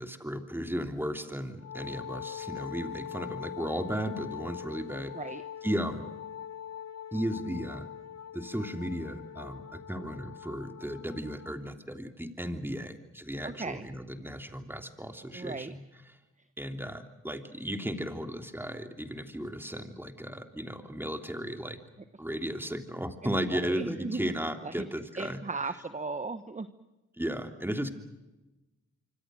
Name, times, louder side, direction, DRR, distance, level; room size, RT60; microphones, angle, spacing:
voice 1, 0.0-5.1 5.6-6.1 7.1-7.9 8.3-15.8 16.6-21.8 22.2-25.4 27.2-27.9, equal, 5° right, 6 dB, 3.2 m, -35 dB
Wind instrument woodwind instrument, 1.6-11.6, left 9 dB, 55° left, 1.2 m, -42 dB
voice 2, 13.4-13.9 15.3-15.7 23.2-24.3 24.6-24.9 25.1-26.7, right 3 dB, 25° right, 11 dB, 1.3 m, -36 dB
25.5 x 25.5 x 6.5 m, 1.0 s
cardioid pair, 60°, 31 cm